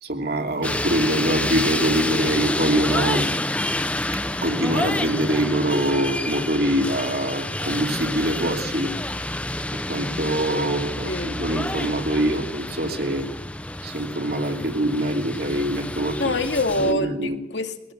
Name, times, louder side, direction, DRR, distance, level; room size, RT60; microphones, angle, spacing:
voice 1, 0.0-3.3 4.4-8.9 9.9-13.3 13.8-16.3 16.8-17.4, right 1 dB, 60° right, 3 dB, 2.8 m, -24 dB
sound 1, 0.6-16.9, left 1 dB, 10° left, 0.8 m, -28 dB
voice 2, 11.1-11.4 15.5-15.6 16.2-17.9, left 2 dB, 85° left, 5 dB, 2.2 m, -26 dB
22.5 x 16.0 x 7.8 m, 0.92 s
head